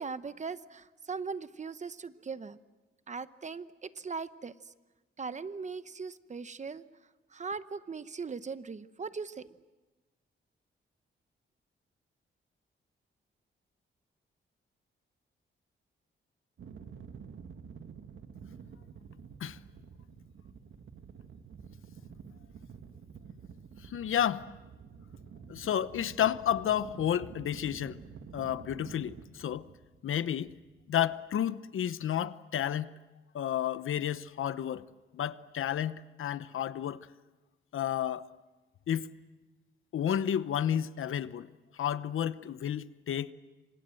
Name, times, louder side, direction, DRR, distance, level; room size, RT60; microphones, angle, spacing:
voice 1, 0.0-2.6 3.1-4.7 5.2-6.8 7.3-9.5, right 5 dB, 35° right, 0.9 m, -39 dB
sound 1, 16.6-31.1, right 6 dB, 70° right, 1.9 m, -49 dB
voice 2, 23.8-24.5 25.5-28.0 28.3-29.6 30.0-30.5 30.9-32.9 33.3-34.8 35.1-37.1 37.7-38.3 38.9-39.1 39.9-41.5 41.7-43.3, left 10 dB, 75° left, 0.9 m, -31 dB
28.0 x 26.0 x 7.7 m
wide cardioid pair, 125°, 21 cm